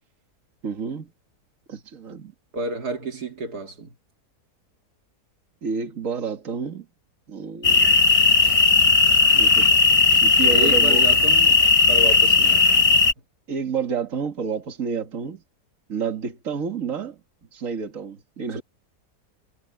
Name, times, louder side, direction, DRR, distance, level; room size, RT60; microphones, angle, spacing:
voice 1, 0.6-1.1 1.7-2.3 5.6-6.9 7.3-8.0 8.3-8.7 9.3-9.7 10.2-11.1 13.5-15.4 15.9-17.2 17.5-18.6, right 6 dB, 55° right, 2.3 m, -29 dB
voice 2, 2.5-3.9 10.5-11.6 11.9-12.8 18.5-18.6, right 2 dB, 75° right, 2.7 m, -30 dB
sound 1, 7.6-13.1, left 4 dB, 25° left, 0.9 m, -16 dB
omnidirectional pair, 1.7 m